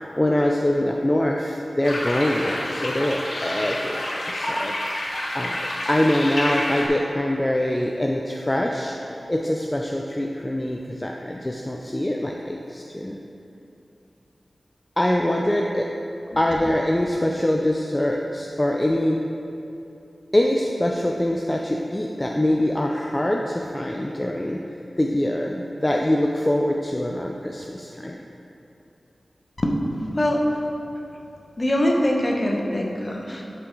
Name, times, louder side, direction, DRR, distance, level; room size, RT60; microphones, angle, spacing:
voice 1, 0.2-4.8 5.3-8.9 9.3-13.2 15.0-15.9 16.4-19.2 20.3-24.6 25.0-28.2, left 1 dB, 20° left, 0 dB, 0.5 m, -24 dB
sound 1, 1.8-6.9, left 1 dB, 75° left, 1.5 m, -28 dB
voice 2, 31.6-33.5, left 1 dB, 35° left, -1 dB, 1.1 m, -22 dB
11.5 x 5.7 x 3.8 m, 2.9 s
wide cardioid pair, 80°, 0 cm